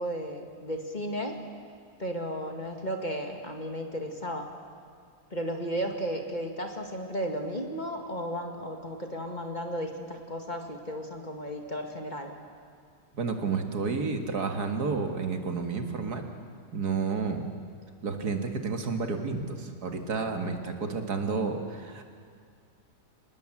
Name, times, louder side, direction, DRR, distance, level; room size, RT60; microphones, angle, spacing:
voice 1, 0.0-1.4 2.0-4.5 5.3-12.4, equal, 25° left, 3 dB, 2.1 m, -34 dB
voice 2, 13.1-16.2 16.7-17.5 18.0-22.0, right 4 dB, 70° right, 5 dB, 2.4 m, -30 dB
26.5 x 20.0 x 7.5 m, 2.2 s
omnidirectional pair, 1.7 m